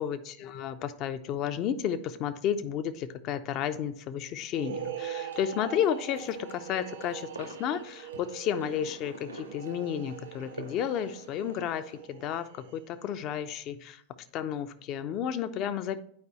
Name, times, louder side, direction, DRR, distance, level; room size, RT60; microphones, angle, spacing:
voice 1, 0.0-14.0 14.3-16.0, left 9 dB, 40° left, 11 dB, 0.5 m, -32 dB
sound 1, 4.5-13.1, right 8 dB, 60° right, 0.7 m, -42 dB
sound 2, 5.2-12.0, right 2 dB, 85° right, 1.2 m, -48 dB
9.4 x 4.6 x 3.1 m, 0.66 s
figure-of-eight pair, 90°, 0 cm